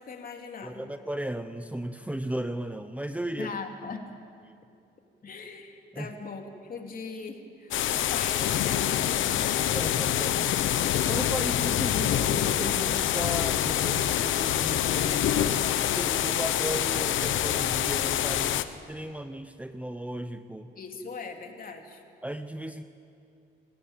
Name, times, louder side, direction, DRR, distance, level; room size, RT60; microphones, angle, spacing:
voice 1, 0.0-0.9 3.4-4.1 5.2-9.8 20.7-22.0, left 4 dB, 45° left, 3 dB, 3.3 m, -40 dB
voice 2, 0.6-3.5 4.5-4.6 5.9-6.1 9.7-10.4 11.1-20.7 22.2-22.8, right 1 dB, 5° right, 9 dB, 0.9 m, -36 dB
sound 1, 7.7-18.6, left 11 dB, 75° left, 1.0 m, -26 dB
28.0 x 18.0 x 9.1 m, 2.5 s
cardioid pair, 90°, 20 cm